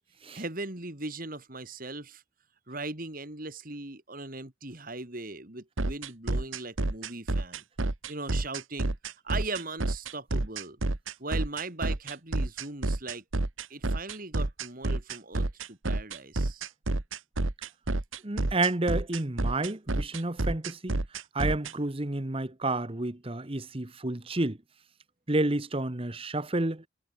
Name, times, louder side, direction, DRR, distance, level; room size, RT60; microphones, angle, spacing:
voice 1, 0.3-2.2 2.7-7.6 8.1-8.9 9.2-10.8 11.2-13.2 13.7-16.6, right 3 dB, 45° right, 2.8 m, -39 dB
sound 1, 5.8-21.7, right 2 dB, 80° right, 1.6 m, -29 dB
voice 2, 18.2-20.9 21.3-24.6 25.3-26.9, right 2 dB, 30° right, 1.1 m, -30 dB
head